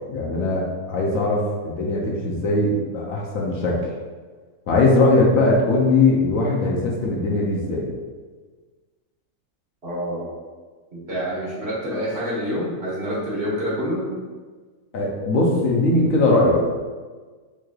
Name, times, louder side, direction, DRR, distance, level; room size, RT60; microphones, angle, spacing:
voice 1, 0.1-3.8 4.7-7.9 14.9-16.8, left 2 dB, 65° left, -2 dB, 1.0 m, -20 dB
voice 2, 9.8-10.2 10.9-14.1, equal, 45° right, -7 dB, 1.4 m, -27 dB
4.6 x 3.1 x 2.3 m, 1.4 s
omnidirectional pair, 1.6 m